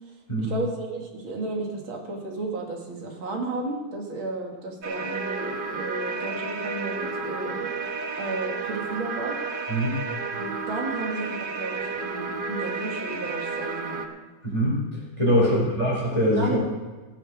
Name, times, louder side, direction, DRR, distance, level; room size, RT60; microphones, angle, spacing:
voice 1, 0.4-7.7 8.2-9.4 10.3-14.1 15.5-15.7 16.4-16.7, right 2 dB, 80° right, 0 dB, 2.9 m, -33 dB
sound 1, 4.8-14.1, right 4 dB, 40° right, 0.7 m, -32 dB
voice 2, 14.4-14.8 15.2-16.4, equal, 15° left, -5 dB, 4.5 m, -22 dB
16.0 x 7.9 x 6.4 m, 1.2 s
omnidirectional pair, 2.2 m